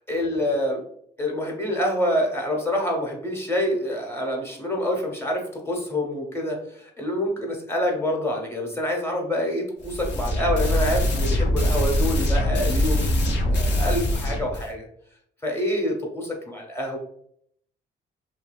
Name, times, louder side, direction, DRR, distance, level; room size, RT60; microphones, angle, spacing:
voice 1, 0.1-0.8 1.2-14.9 15.4-17.0, left 1 dB, 10° left, 0 dB, 0.9 m, -27 dB
sound 1, 9.8-14.7, left 1 dB, 60° left, 0.7 m, -23 dB
2.7 x 2.7 x 2.2 m, 0.66 s
cardioid pair, 90°, 20 cm